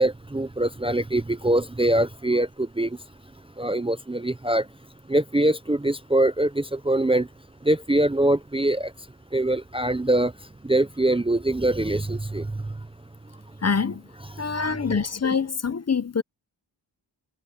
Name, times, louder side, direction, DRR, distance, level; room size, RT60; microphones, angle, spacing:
voice 1, 0.0-3.0 3.6-4.7 5.1-7.3 7.6-8.9 9.3-10.3 10.6-12.8 14.4-15.0, right 1 dB, 10° right, 0.6 m, -23 dB
voice 2, 13.6-14.0 14.4-16.2, left 5 dB, 35° left, 0.7 m, -25 dB
wide cardioid pair, 135°, 46 cm